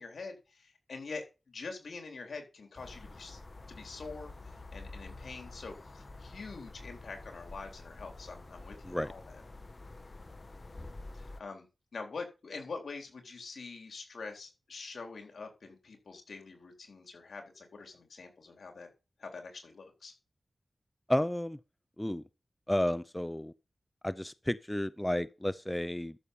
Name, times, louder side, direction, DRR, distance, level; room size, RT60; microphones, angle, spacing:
voice 1, 0.0-3.4 3.7-9.4 10.9-11.7 11.9-18.9 19.2-20.1, left 4 dB, 85° left, 3.7 m, -45 dB
sound 1, 2.8-11.4, left 2 dB, 45° left, 1.3 m, -48 dB
voice 2, 21.1-21.6 22.0-22.2 22.7-23.5 24.0-26.2, left 1 dB, 10° left, 0.6 m, -32 dB
13.0 x 6.8 x 5.5 m
wide cardioid pair, 60°, 0 cm